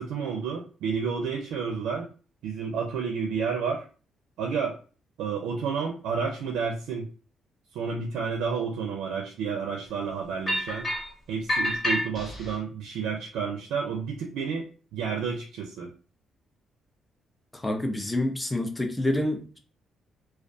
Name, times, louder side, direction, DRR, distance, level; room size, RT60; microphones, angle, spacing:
voice 1, 0.0-2.1 2.4-3.8 4.4-4.7 5.2-7.1 7.7-10.9 11.3-14.7 14.9-15.9, right 6 dB, 90° right, 0.4 m, -30 dB
sound 1, 10.5-11.1 11.5-12.6, left 1 dB, 40° left, 1.1 m, -28 dB
voice 2, 17.5-19.6, left 1 dB, 15° left, 0.4 m, -28 dB
2.3 x 2.2 x 2.5 m
cardioid pair, 90°, 0 cm